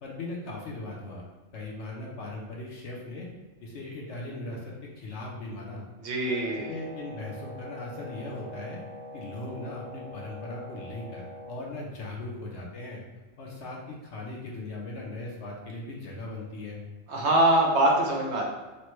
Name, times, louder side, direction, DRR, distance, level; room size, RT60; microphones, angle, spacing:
voice 1, 0.0-1.3 1.5-3.3 3.6-5.9 6.4-8.8 9.1-13.0 13.4-16.8, left 2 dB, 65° left, -2 dB, 0.9 m, -39 dB
voice 2, 6.0-6.7 17.1-18.5, right 1 dB, 65° right, -2 dB, 0.8 m, -23 dB
Wind instrument woodwind instrument, 6.2-11.6, left 1 dB, 45° right, 0.4 m, -43 dB
3.1 x 2.1 x 3.0 m, 1.2 s
omnidirectional pair, 1.3 m